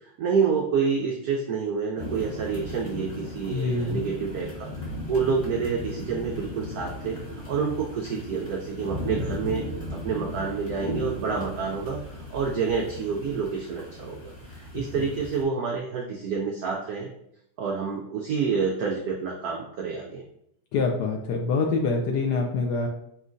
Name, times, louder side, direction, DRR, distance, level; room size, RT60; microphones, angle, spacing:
voice 1, 0.2-4.7 5.1-9.6 9.9-12.0 12.3-17.1 17.6-20.2, right 5 dB, 80° right, 1 dB, 0.8 m, -28 dB
sound 1, 2.0-15.4, left 1 dB, 25° left, 1.4 m, -37 dB
voice 2, 3.5-4.1 14.7-15.0 20.7-22.9, left 4 dB, 75° left, 1 dB, 0.9 m, -26 dB
5.3 x 3.1 x 2.5 m, 0.75 s
omnidirectional pair, 2.2 m